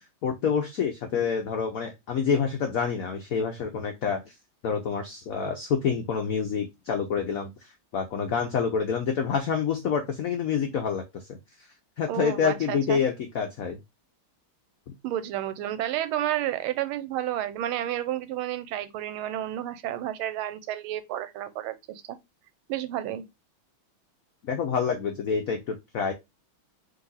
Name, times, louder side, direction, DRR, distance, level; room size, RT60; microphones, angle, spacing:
voice 1, 0.2-4.3 4.6-11.4 12.0-13.8 24.5-26.1, left 6 dB, 85° left, 0.7 m, -27 dB
voice 2, 12.1-13.0 15.0-22.0 22.7-23.2, right 12 dB, 85° right, 1.5 m, -31 dB
4.0 x 2.9 x 3.9 m
omnidirectional pair, 2.3 m